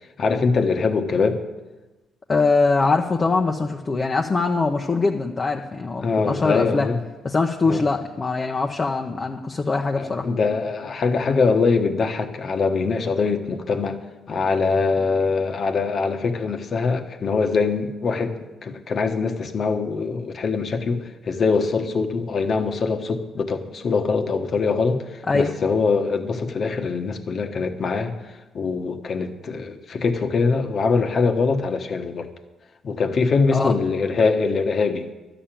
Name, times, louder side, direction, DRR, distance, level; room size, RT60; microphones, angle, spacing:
voice 1, 0.2-1.4 6.0-7.0 7.7-7.8 10.0-14.0 14.3-28.1 28.5-32.3 32.8-35.1, left 4 dB, 50° left, 6 dB, 1.3 m, -23 dB
voice 2, 2.3-6.9 7.2-10.3 25.3-25.5 33.5-33.7, left 3 dB, 30° left, 2 dB, 0.9 m, -22 dB
12.5 x 7.1 x 9.0 m, 1.1 s
cardioid pair, 90°, 0 cm